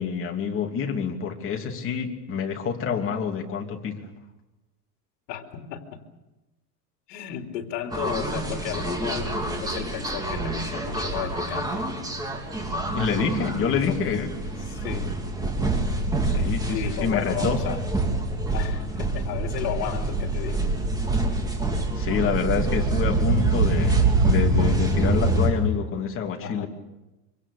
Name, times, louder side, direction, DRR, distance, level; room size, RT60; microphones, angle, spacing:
voice 1, 0.0-4.0 12.9-14.3 16.2-17.6 22.0-26.7, left 6 dB, 25° left, 2 dB, 3.0 m, -27 dB
voice 2, 5.3-6.0 7.1-9.3 9.6-11.9 13.6-14.0 14.7-15.1 16.7-17.8 18.5-20.7 26.4-26.7, left 10 dB, 70° left, 4 dB, 3.3 m, -33 dB
sound 1, 7.9-25.5, right 2 dB, 10° right, 3.0 m, -25 dB
26.0 x 24.5 x 6.8 m, 1.0 s
supercardioid pair, 150°, 48 cm